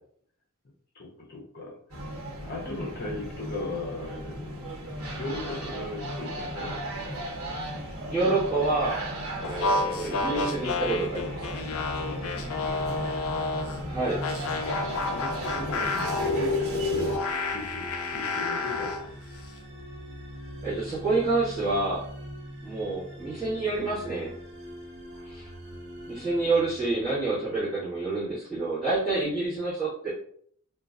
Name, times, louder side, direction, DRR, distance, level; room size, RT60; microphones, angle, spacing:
voice 1, 0.9-1.8 2.3-4.8 5.1-7.1 12.3-13.2 15.0-19.2 25.1-26.5, left 2 dB, 45° left, -1 dB, 0.7 m, -39 dB
sound 1, 1.9-17.2, right 1 dB, 80° right, 1.0 m, -36 dB
voice 2, 8.1-9.0 9.4-11.5 13.9-14.2 20.6-22.0 22.6-24.3 25.2-25.5 26.1-30.1, right 3 dB, 5° right, -16 dB, 1.5 m, -28 dB
sound 2, 9.4-13.8 14.2-19.1, left 3 dB, 80° left, 0.4 m, -30 dB
sound 3, 10.4-27.5, equal, 50° right, 0.7 m, -43 dB
3.7 x 2.3 x 2.4 m, 0.63 s
head